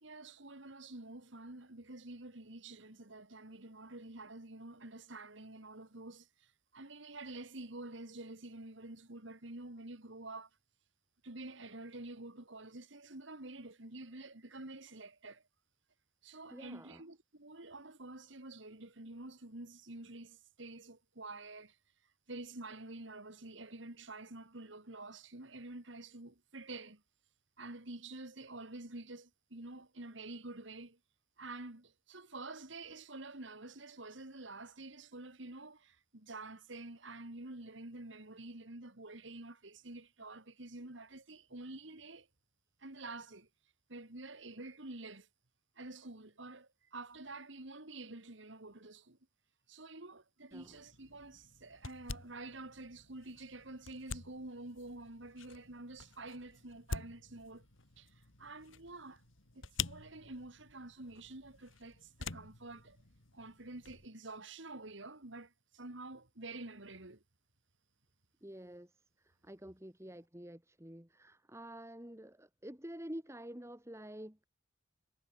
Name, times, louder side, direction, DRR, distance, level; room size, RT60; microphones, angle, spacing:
voice 1, 0.0-10.5 11.2-15.4 16.2-21.8 22.3-27.0 27.6-31.0 31.4-42.3 42.8-43.5 43.9-45.3 45.8-49.2 49.7-57.7 58.0-59.2 59.5-63.0 63.3-67.2, right 2 dB, 65° right, 2.4 m, -48 dB
voice 2, 16.5-17.0 50.5-50.8 68.4-74.4, right 1 dB, 15° right, 1.7 m, -49 dB
sound 1, 50.5-64.1, left 5 dB, 75° left, 2.9 m, -48 dB
head